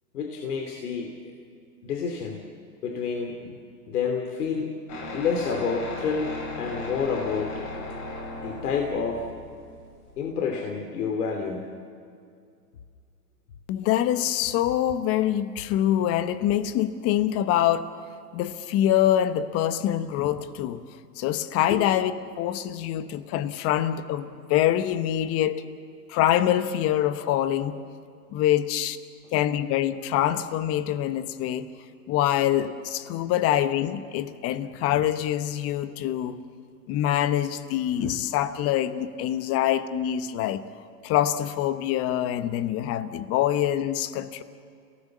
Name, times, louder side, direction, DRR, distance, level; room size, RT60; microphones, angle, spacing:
voice 1, 0.1-1.3 1.8-2.5 2.8-3.6 3.9-4.7 5.1-7.6 8.4-9.3 10.2-11.7 21.7-21.8, left 5 dB, 65° left, 3 dB, 2.8 m, -29 dB
sound 1, 4.9-10.3, left 2 dB, 45° left, 6.5 m, -37 dB
voice 2, 13.7-18.0 18.3-20.8 21.2-22.1 22.4-25.6 26.1-27.8 28.3-29.0 29.3-31.7 32.1-36.4 36.9-40.6 41.0-44.4, left 11 dB, 30° left, 12 dB, 1.1 m, -25 dB
30.0 x 18.0 x 7.4 m, 2.3 s
hypercardioid pair, 120°, 50 cm